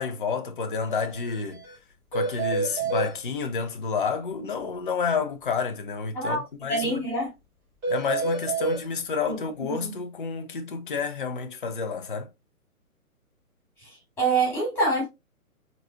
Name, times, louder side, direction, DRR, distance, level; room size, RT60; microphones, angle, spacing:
voice 1, 0.0-1.6 2.1-7.0 7.9-12.3, left 5 dB, 35° left, 0.5 m, -30 dB
sound 1, 0.9-1.0 1.3-1.4 1.6-1.7 2.1-3.1 7.8-8.8, right 4 dB, 25° right, 1.8 m, -28 dB
voice 2, 6.7-7.3 9.3-9.4 9.7-10.0 14.2-15.0, right 3 dB, 5° left, 2.6 m, -25 dB
4.0 x 3.9 x 2.2 m
figure-of-eight pair, 135°, 44 cm